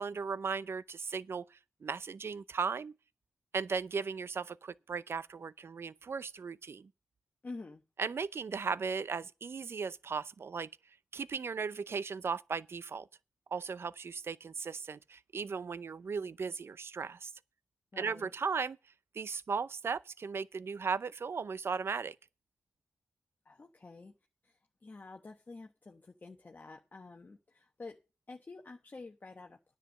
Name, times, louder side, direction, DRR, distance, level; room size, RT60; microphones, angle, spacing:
voice 1, 0.0-2.9 3.5-6.9 8.0-10.7 11.1-13.1 13.5-17.3 18.0-18.8 19.1-22.2, right 5 dB, 55° right, 0.5 m, -37 dB
voice 2, 7.4-7.8 17.9-18.3 23.4-24.1 24.4-28.0 28.3-29.8, left 3 dB, 35° left, 1.1 m, -49 dB
10.0 x 7.9 x 6.4 m
wide cardioid pair, 90°, 5 cm